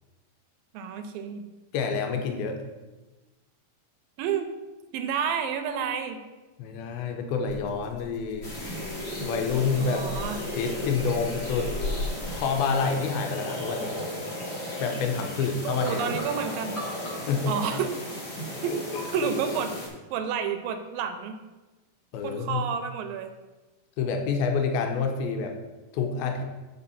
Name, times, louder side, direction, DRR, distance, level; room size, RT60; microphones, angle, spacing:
voice 1, 0.7-1.4 4.2-4.5 4.9-6.2 9.8-10.4 15.6-16.8 17.5-17.9 18.6-18.8 19.1-19.7 20.1-21.4 22.2-23.3, right 7 dB, 85° right, 8 dB, 2.3 m, -30 dB
voice 2, 1.7-2.6 6.6-8.5 9.2-10.1 10.6-11.7 12.0-14.0 14.8-16.0 17.3-17.6 18.9-19.3 22.1-22.6 24.0-25.5 25.9-26.4, left 5 dB, 85° left, 4 dB, 2.6 m, -28 dB
Rattle (instrument), 7.5-12.8, left 2 dB, 65° left, 1.9 m, -38 dB
sound 1, 8.4-19.9, equal, 50° left, 0.8 m, -35 dB
5.7 x 5.4 x 6.8 m, 1.2 s
omnidirectional pair, 4.2 m